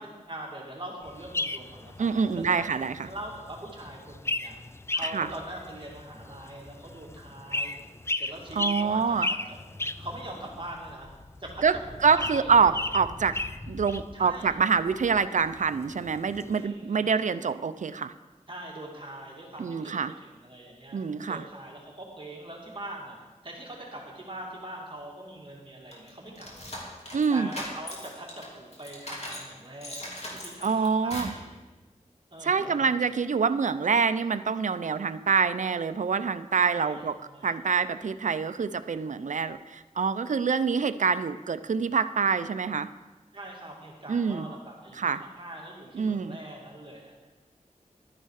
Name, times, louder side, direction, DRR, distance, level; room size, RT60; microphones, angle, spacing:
voice 1, 0.0-2.7 3.0-4.6 4.9-7.8 8.2-9.4 10.0-11.1 11.4-11.6 11.9-12.6 14.1-14.5 16.5-17.1 18.5-23.2 23.4-26.5 27.3-30.0 30.3-31.5 32.3-32.7 36.7-37.5 43.3-47.1, right 1 dB, 40° right, -2 dB, 2.4 m, -42 dB
sound 1, 1.1-16.7, left 2 dB, 20° left, 0.4 m, -36 dB
voice 2, 2.0-3.1 5.1-5.3 8.6-9.3 11.6-11.8 12.0-13.4 13.7-18.1 19.6-20.1 20.9-21.4 27.1-27.5 30.6-31.3 32.4-37.1 37.4-42.9 44.1-44.5 44.9-45.2 45.9-46.4, right 5 dB, 70° right, 12 dB, 0.5 m, -26 dB
sound 2, 25.9-29.5 29.8-31.4, left 1 dB, 55° left, 2.8 m, -39 dB
12.0 x 9.9 x 4.8 m, 1.2 s
wide cardioid pair, 60°, 13 cm